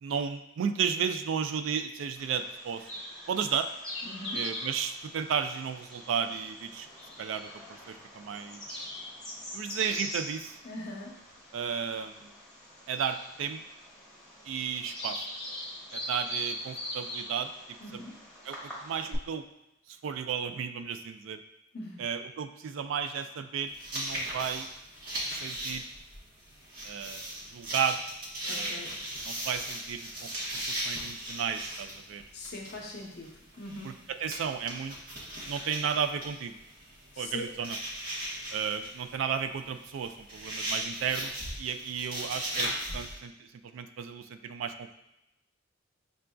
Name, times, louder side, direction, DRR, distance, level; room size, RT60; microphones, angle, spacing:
voice 1, 0.0-2.9 3.3-3.7 4.3-6.9 7.2-8.9 9.5-10.6 11.5-12.3 12.9-13.6 14.5-15.3 15.9-18.0 18.5-19.5 19.9-21.4 22.0-24.7 25.3-25.8 26.8-28.0 28.4-29.0 29.2-32.2 34.2-35.0 35.5-36.5 37.2-37.8 38.5-45.0, right 7 dB, 65° right, 8 dB, 0.3 m, -34 dB
Bird vocalization bird call bird song, 2.2-19.2, left 1 dB, 5° left, 1.1 m, -42 dB
voice 2, 4.0-4.4 10.6-11.1 17.8-18.2 21.7-22.0 28.5-28.9 32.3-33.3 33.6-33.9 37.1-37.5, left 1 dB, 55° left, -1 dB, 0.7 m, -41 dB
sound 1, 23.7-43.1, right 1 dB, 45° right, 1.2 m, -38 dB
6.7 x 2.5 x 2.2 m, 0.89 s
head